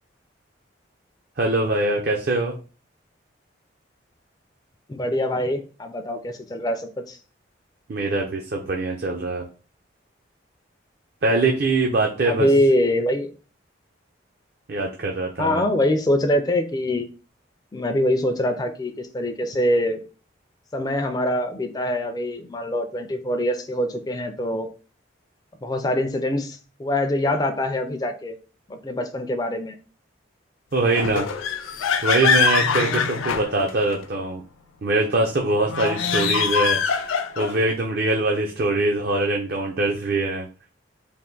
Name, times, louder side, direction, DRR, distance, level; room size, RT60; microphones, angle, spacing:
voice 1, 1.4-2.5 7.9-9.4 11.2-12.5 14.7-15.6 30.7-31.3 32.0-34.4 34.8-40.5, right 2 dB, 50° right, 1 dB, 0.5 m, -23 dB
voice 2, 4.9-7.2 12.2-13.3 15.4-17.1 17.7-20.0 20.7-24.7 25.6-28.3 28.7-29.8, left 1 dB, 20° left, 6 dB, 0.4 m, -24 dB
sound 1, 30.9-34.0 35.6-37.7, left 6 dB, 90° left, 0.4 m, -23 dB
3.4 x 2.5 x 3.8 m, 0.36 s
head